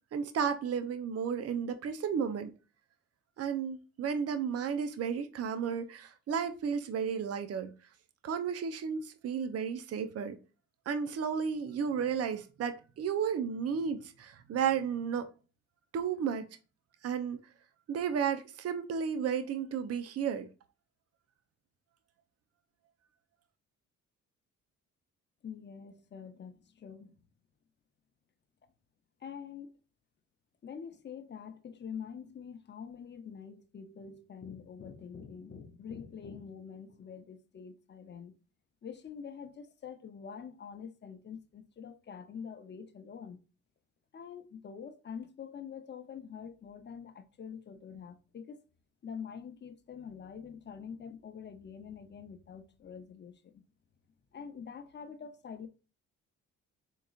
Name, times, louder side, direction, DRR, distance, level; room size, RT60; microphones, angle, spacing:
voice 1, 0.1-2.5 3.4-7.7 8.2-10.4 10.9-15.3 15.9-16.5 17.0-17.4 17.9-20.5, right 7 dB, 55° right, 0.7 m, -33 dB
voice 2, 25.4-27.2 29.2-29.7 30.6-38.3 38.8-43.4 44.1-48.6 49.0-53.6 54.3-55.7, left 7 dB, 35° left, 0.7 m, -45 dB
4.0 x 3.7 x 2.4 m
cardioid pair, 90°, 30 cm